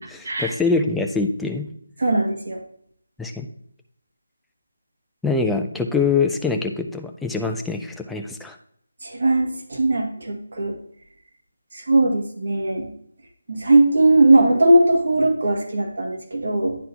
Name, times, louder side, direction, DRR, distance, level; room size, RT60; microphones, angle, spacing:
voice 1, 0.1-1.7 3.2-3.5 5.2-8.6, left 4 dB, ahead, 3 dB, 0.3 m, -24 dB
voice 2, 2.0-2.6 9.0-10.7 11.7-12.9 13.5-16.8, right 2 dB, 60° right, 0 dB, 2.1 m, -19 dB
10.5 x 3.9 x 2.8 m, 0.67 s
figure-of-eight pair, 170°, 0 cm